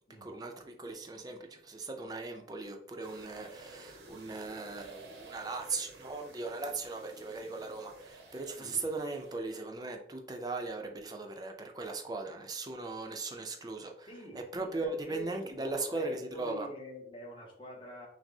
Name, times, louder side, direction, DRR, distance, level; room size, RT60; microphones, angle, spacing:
voice 1, 0.2-14.1 14.3-16.7, right 3 dB, 20° right, 4 dB, 0.4 m, -38 dB
sound 1, 3.0-9.4, right 2 dB, 75° right, 0.7 m, -52 dB
voice 2, 14.1-18.1, equal, 30° left, -1 dB, 0.9 m, -46 dB
5.9 x 2.0 x 2.6 m, 0.68 s
head